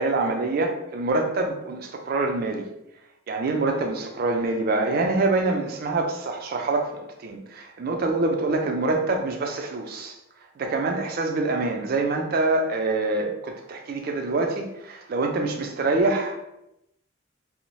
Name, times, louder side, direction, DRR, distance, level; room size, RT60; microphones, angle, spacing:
voice 1, 0.0-2.6 3.3-10.2 10.6-16.4, right 2 dB, 45° right, 0.3 m, -25 dB
2.6 x 2.0 x 3.0 m
head